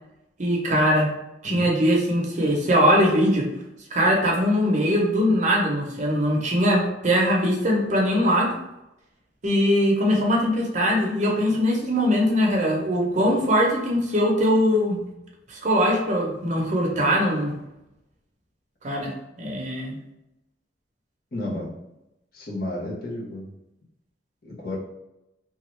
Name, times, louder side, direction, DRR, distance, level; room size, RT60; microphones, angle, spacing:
voice 1, 0.4-1.1 1.4-3.5 3.9-8.5 9.4-15.0 15.5-17.5 18.8-19.1 19.4-20.0, equal, 45° right, -1 dB, 0.7 m, -21 dB
voice 2, 21.3-21.7 22.3-23.5 24.4-24.8, left 1 dB, 55° left, -3 dB, 0.9 m, -32 dB
3.0 x 2.3 x 3.1 m, 0.90 s
head